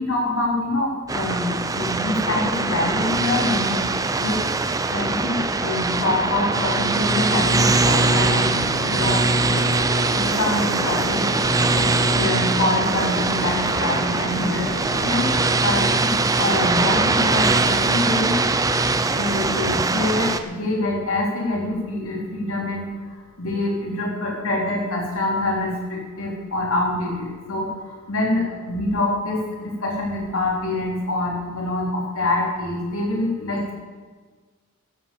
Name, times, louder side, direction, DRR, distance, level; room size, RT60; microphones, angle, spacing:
voice 1, 0.0-3.9 4.2-4.4 4.9-8.6 8.8-9.2 10.1-11.2 11.8-14.7 15.0-15.3 15.6-18.5 18.7-18.8 19.1-33.7, left 2 dB, 80° left, -2 dB, 3.7 m, -25 dB
sound 1, 1.1-20.4, right 3 dB, 15° right, 0.5 m, -22 dB
Gunshot gunfire, 7.6-15.5, left 1 dB, 45° left, 2.2 m, -32 dB
14.0 x 7.9 x 7.2 m, 1.5 s
head